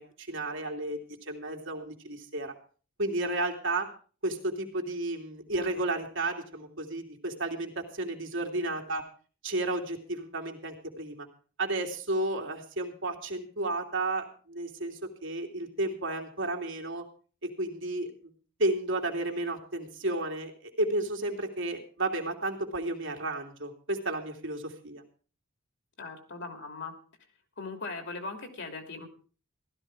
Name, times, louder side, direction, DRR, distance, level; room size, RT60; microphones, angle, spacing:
voice 1, 0.0-2.5 3.0-3.9 4.2-9.0 9.4-11.3 11.6-17.0 17.4-18.3 18.6-25.0, right 2 dB, 65° right, 3 dB, 2.9 m, -32 dB
voice 2, 26.0-26.9 27.6-29.1, left 3 dB, 60° left, 6 dB, 3.0 m, -39 dB
15.5 x 13.0 x 4.8 m, 0.40 s
head